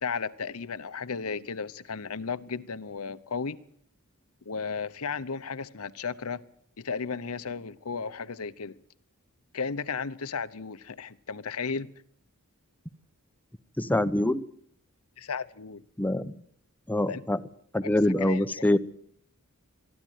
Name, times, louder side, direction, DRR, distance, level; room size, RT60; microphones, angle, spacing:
voice 1, 0.0-3.6 4.5-6.4 6.8-8.8 9.5-11.9 15.2-15.8 17.1-17.2 17.8-17.9 18.2-18.8, left 5 dB, 75° left, 0.9 m, -34 dB
voice 2, 13.8-14.5 16.0-16.4 16.9-17.4 17.7-18.8, left 1 dB, 10° left, 0.8 m, -25 dB
23.5 x 13.0 x 9.3 m
head